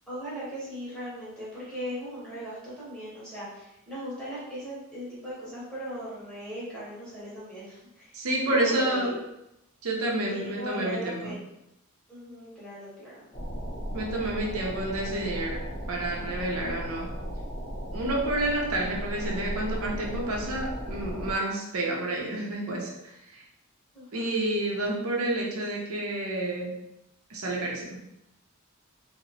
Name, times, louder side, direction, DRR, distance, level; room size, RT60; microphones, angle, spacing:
voice 1, 0.1-9.2 10.3-11.4 12.1-13.3 23.9-24.3, equal, 5° left, -10 dB, 1.0 m, -38 dB
voice 2, 8.1-9.1 9.8-11.4 13.9-15.6 15.9-17.1 17.9-23.4 24.1-26.7 27.3-28.0, right 1 dB, 70° right, -2 dB, 0.7 m, -29 dB
sound 1, 13.3-21.4, equal, 30° left, 0.7 m, -36 dB
2.8 x 2.1 x 2.7 m, 0.87 s
head